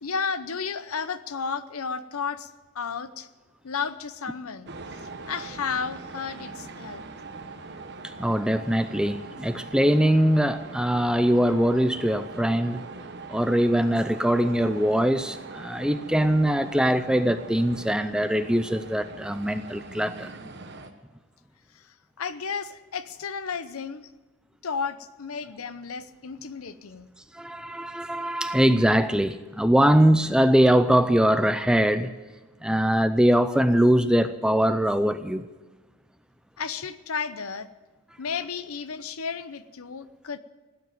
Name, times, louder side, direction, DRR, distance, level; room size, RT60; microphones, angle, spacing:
voice 1, 0.0-3.3 3.6-4.7 5.2-7.0 21.7-24.1 24.6-27.1 36.6-37.7 38.2-40.4, left 5 dB, 75° left, 0.8 m, -33 dB
sound 1, 4.7-20.9, right 3 dB, 50° right, 1.1 m, -41 dB
voice 2, 8.0-12.8 13.3-20.3 27.3-32.1 32.6-35.4, equal, 5° right, 0.5 m, -22 dB
17.0 x 9.5 x 9.1 m
head